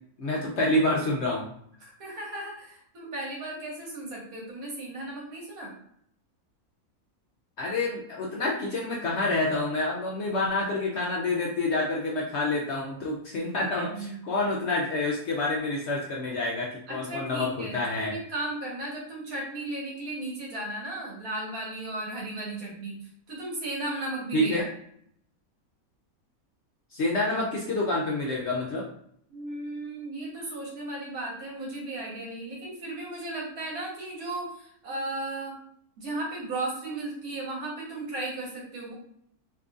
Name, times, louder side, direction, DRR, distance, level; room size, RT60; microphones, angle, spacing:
voice 1, 0.2-1.5 7.6-18.1 24.3-24.7 26.9-28.9, left 2 dB, 65° left, -3 dB, 0.7 m, -28 dB
voice 2, 1.8-5.7 13.8-14.2 16.9-23.0 23.3-24.7 29.3-35.5 36.0-38.9, right 2 dB, 75° right, -3 dB, 1.6 m, -35 dB
3.6 x 2.9 x 2.4 m, 0.68 s
omnidirectional pair, 1.6 m